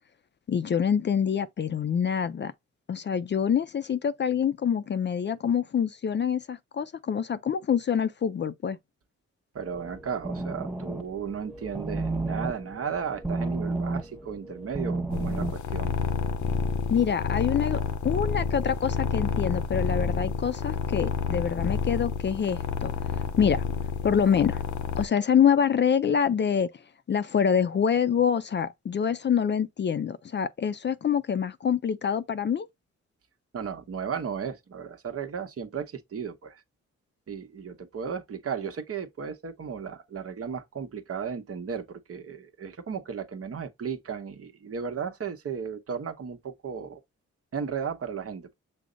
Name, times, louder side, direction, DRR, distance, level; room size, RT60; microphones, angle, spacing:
voice 1, 0.5-2.5 2.9-8.8 16.9-22.9 23.4-23.6 24.0-24.6 25.0-26.7 27.1-32.7, left 7 dB, 40° left, 0.4 m, -26 dB
voice 2, 9.5-15.9 33.5-36.6 37.3-47.0 47.5-48.5, right 6 dB, 50° right, 0.9 m, -35 dB
sound 1, 9.7-15.5, right 2 dB, 5° right, 0.7 m, -32 dB
sound 2, 15.1-25.1, left 6 dB, 80° left, 0.7 m, -29 dB
6.1 x 2.1 x 3.7 m
cardioid pair, 75°, 29 cm